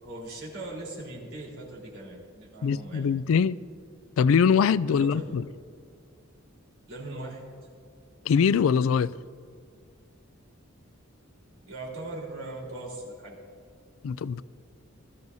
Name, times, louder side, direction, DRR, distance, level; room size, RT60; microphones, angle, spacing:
voice 1, 0.0-3.1 4.9-5.3 6.9-7.4 11.6-13.4, right 2 dB, 75° right, 4.0 m, -40 dB
voice 2, 2.6-3.6 4.2-5.4 8.3-9.1 14.0-14.4, left 6 dB, 75° left, 0.3 m, -22 dB
20.5 x 13.5 x 2.7 m
head